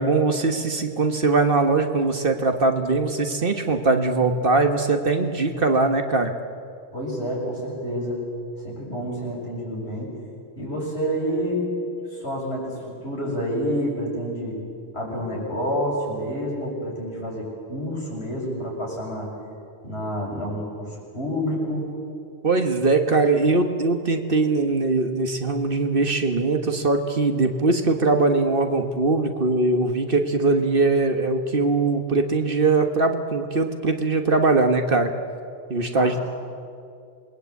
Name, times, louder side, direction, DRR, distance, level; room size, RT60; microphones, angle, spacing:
voice 1, 0.0-6.3 22.4-35.1 35.7-36.2, right 3 dB, 55° right, 6 dB, 1.6 m, -21 dB
voice 2, 6.9-8.2 8.6-10.1 10.6-11.7 12.1-14.6 14.9-19.3 19.8-21.8 35.9-36.2, equal, 70° left, -3 dB, 7.6 m, -28 dB
27.0 x 21.0 x 8.4 m, 2.4 s
omnidirectional pair, 1.1 m